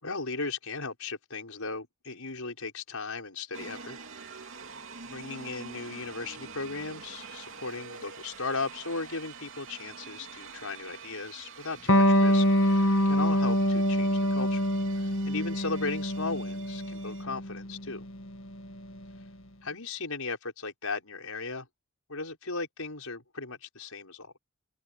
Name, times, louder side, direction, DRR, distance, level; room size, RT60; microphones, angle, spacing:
voice 1, 0.0-4.3 5.0-14.6 14.9-18.1 19.6-21.7 22.1-24.4, left 3 dB, 90° left, 5.8 m, -37 dB
sound 1, 3.5-17.2, right 5 dB, 65° right, 3.0 m, -46 dB
Electric guitar, 11.9-19.0, equal, 65° left, 2.0 m, -25 dB
open air
head